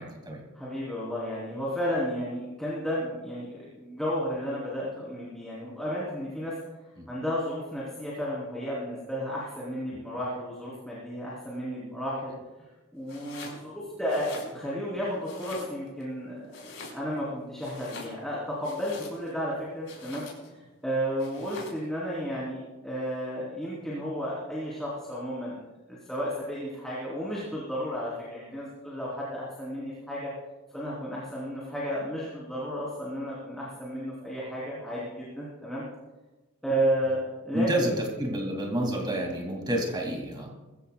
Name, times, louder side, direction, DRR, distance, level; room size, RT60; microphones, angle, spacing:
voice 1, 0.0-0.4 7.0-7.1 37.5-40.5, right 1 dB, 20° right, 1 dB, 2.4 m, -29 dB
voice 2, 0.5-6.5 7.1-12.3 12.9-16.6 16.9-25.6 25.9-30.3 30.7-35.8 36.6-37.9, equal, ahead, -7 dB, 3.4 m, -33 dB
Domestic sounds home sounds, 13.0-13.6 14.0-14.9 15.2-16.0 16.5-17.3 17.6-19.4 19.8-20.6 21.2-21.9, left 3 dB, 75° left, 4.9 m, -44 dB
22.5 x 15.0 x 2.3 m, 1.1 s
head